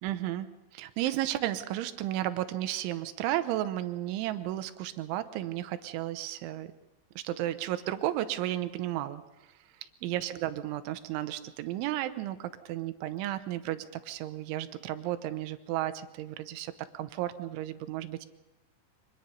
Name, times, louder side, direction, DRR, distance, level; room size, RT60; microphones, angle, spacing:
voice 1, 0.0-6.7 7.2-9.2 10.0-18.3, right 13 dB, 80° right, 11 dB, 3.2 m, -33 dB
24.5 x 20.5 x 5.4 m, 1.0 s
omnidirectional pair, 5.7 m